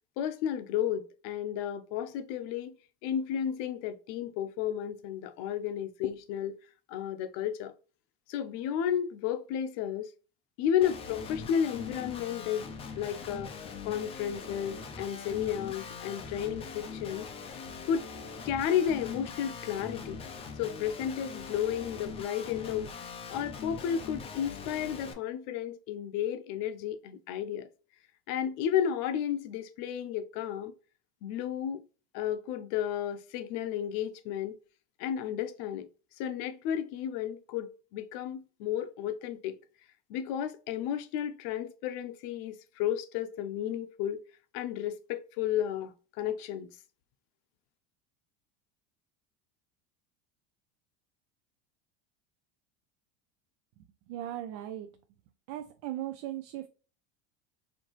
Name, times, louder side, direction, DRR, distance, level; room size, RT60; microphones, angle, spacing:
voice 1, 0.2-2.8 3.0-6.5 6.9-7.7 8.3-10.1 10.6-12.7 13.0-13.5 13.8-17.3 17.9-18.1 18.4-20.2 20.6-22.9 23.3-27.7 28.3-30.7 31.2-31.8 32.1-34.5 35.0-35.9 36.2-39.6 40.1-44.2 44.5-46.7, left 9 dB, 55° left, 0.7 m, -32 dB
Guitar, 10.8-25.1, left 5 dB, 15° left, 0.4 m, -42 dB
voice 2, 53.8-54.9 55.5-56.7, right 13 dB, 60° right, 0.5 m, -38 dB
4.4 x 2.8 x 2.9 m
supercardioid pair, 150°, 35 cm